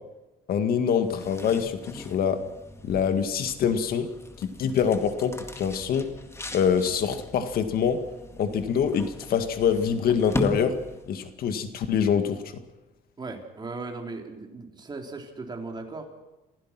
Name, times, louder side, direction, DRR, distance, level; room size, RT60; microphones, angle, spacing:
voice 1, 0.5-2.4 2.8-4.1 4.4-6.1 6.5-8.0 8.4-10.7 11.1-12.5, left 7 dB, 60° left, 8 dB, 2.0 m, -25 dB
sound 1, 1.0-11.3, left 1 dB, 15° left, 2.0 m, -39 dB
voice 2, 13.2-16.1, right 3 dB, 25° right, 2 dB, 3.8 m, -37 dB
27.5 x 16.0 x 6.1 m, 1.0 s
cardioid pair, 110°, 17 cm